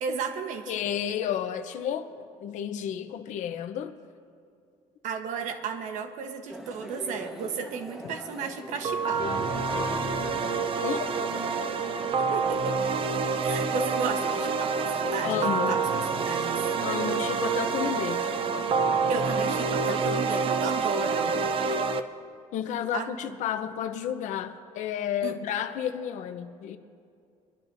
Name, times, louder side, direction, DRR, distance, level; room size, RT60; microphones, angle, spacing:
voice 1, 0.0-0.7 5.0-9.3 12.2-12.8 13.4-16.6 19.1-21.4 22.9-23.1 25.2-25.4, right 6 dB, 80° right, 6 dB, 1.1 m, -34 dB
voice 2, 0.7-3.9 10.8-11.1 15.2-15.8 16.8-18.2 22.5-26.8, left 9 dB, 75° left, 8 dB, 0.8 m, -31 dB
sound 1, 6.5-21.9, equal, 5° right, 1.1 m, -42 dB
sound 2, 8.5-8.9 9.2-18.0, left 4 dB, 35° left, 1.4 m, -43 dB
sound 3, 8.8-22.0, right 5 dB, 45° right, 0.6 m, -27 dB
23.5 x 12.0 x 2.7 m, 2.4 s
cardioid pair, 125°, 13 cm